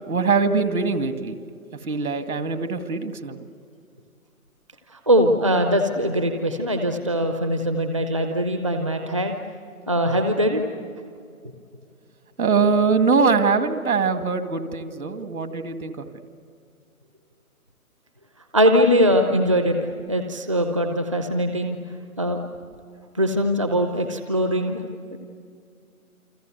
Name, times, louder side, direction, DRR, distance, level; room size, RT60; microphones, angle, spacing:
voice 1, 0.1-1.4 1.8-3.4 12.4-16.1, right 4 dB, 70° right, 8 dB, 2.3 m, -22 dB
voice 2, 4.9-9.4 9.9-10.6 18.5-19.8 20.1-21.8 22.2-22.4 23.1-24.8 25.1-25.2, equal, 20° right, 5 dB, 0.7 m, -21 dB
29.5 x 24.0 x 8.0 m, 2.3 s
hypercardioid pair, 175°, 43 cm